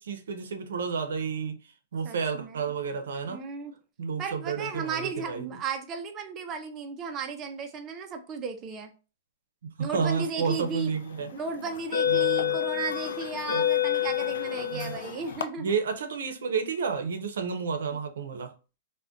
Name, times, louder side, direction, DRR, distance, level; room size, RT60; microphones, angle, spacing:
voice 1, 0.0-1.6 1.9-3.4 4.0-5.5 9.6-11.3 12.1-12.6 13.5-13.7 14.7-15.0 15.6-18.5, right 5 dB, 85° right, 0.5 m, -31 dB
voice 2, 2.0-2.6 3.3-3.7 4.2-8.9 9.8-10.9 11.3-15.7, right 5 dB, 20° right, 0.4 m, -35 dB
sound 1, 10.7-10.9 11.6-15.4, left 10 dB, 80° left, 0.3 m, -28 dB
2.5 x 2.1 x 3.5 m
hypercardioid pair, 160°, 0 cm